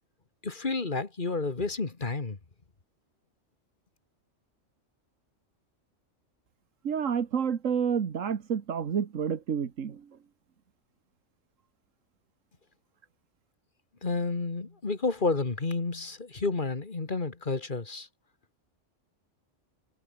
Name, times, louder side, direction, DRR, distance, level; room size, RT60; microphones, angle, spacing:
voice 1, 0.4-2.4 14.0-18.1, left 3 dB, 40° left, 2.0 m, -30 dB
voice 2, 6.8-10.1, right 7 dB, 85° right, 1.7 m, -29 dB
omnidirectional pair, 1.3 m